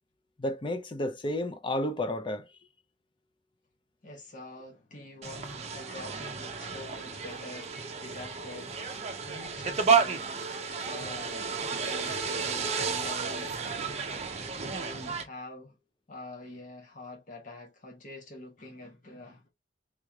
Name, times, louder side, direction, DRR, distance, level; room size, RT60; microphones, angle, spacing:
voice 1, 0.4-2.5, left 1 dB, 30° left, 0.5 m, -31 dB
voice 2, 4.0-8.8 9.2-10.3 10.8-13.6 14.7-15.8 16.1-19.5, left 2 dB, 45° left, 1.3 m, -46 dB
sound 1, 5.2-15.2, right 5 dB, 40° right, 0.6 m, -32 dB
3.6 x 3.2 x 2.3 m
head